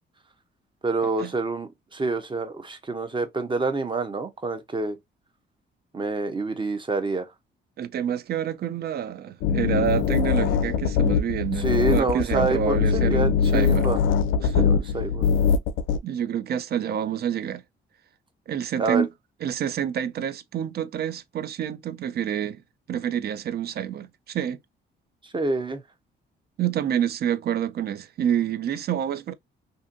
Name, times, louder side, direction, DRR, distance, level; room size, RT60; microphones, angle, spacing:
voice 1, 0.8-5.0 5.9-7.3 11.6-14.0 14.6-15.3 18.8-19.1 25.2-25.8, right 3 dB, 25° right, 0.7 m, -27 dB
voice 2, 7.8-13.9 14.4-14.7 16.0-17.6 18.5-19.1 19.4-22.6 22.9-24.6 26.6-29.3, right 9 dB, 55° right, 0.4 m, -28 dB
sound 1, 9.4-16.0, left 6 dB, 80° left, 0.4 m, -22 dB
2.6 x 2.6 x 2.5 m
cardioid pair, 90°, 20 cm